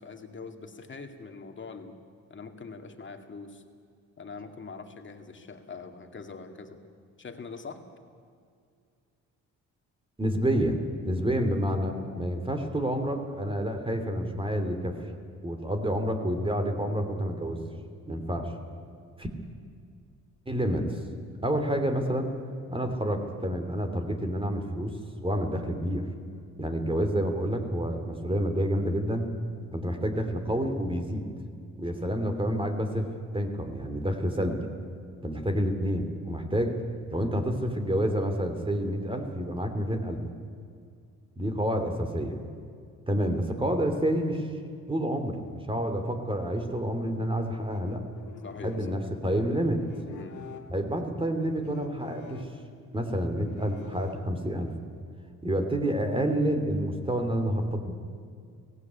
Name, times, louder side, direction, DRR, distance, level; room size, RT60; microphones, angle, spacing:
voice 1, 0.0-2.0 2.3-3.6 4.2-6.8 7.2-7.8 48.4-49.1 50.1-50.4, left 4 dB, 35° left, 5 dB, 2.3 m, -43 dB
voice 2, 10.2-10.8 11.0-15.0 15.4-17.6 18.1-18.5 19.2-19.3 20.5-21.0 21.4-22.3 22.7-25.0 25.2-26.0 26.6-29.3 29.7-31.2 31.8-34.7 35.2-36.8 37.1-40.2 41.4-42.4 43.1-44.5 44.9-48.0 48.6-49.8 50.7-52.5 52.9-54.7 55.4-57.9, equal, 15° right, 6 dB, 2.9 m, -28 dB
sound 1, 47.2-54.7, left 6 dB, 60° left, 2.0 m, -47 dB
17.0 x 16.5 x 9.5 m, 2.2 s
supercardioid pair, 70°, 33 cm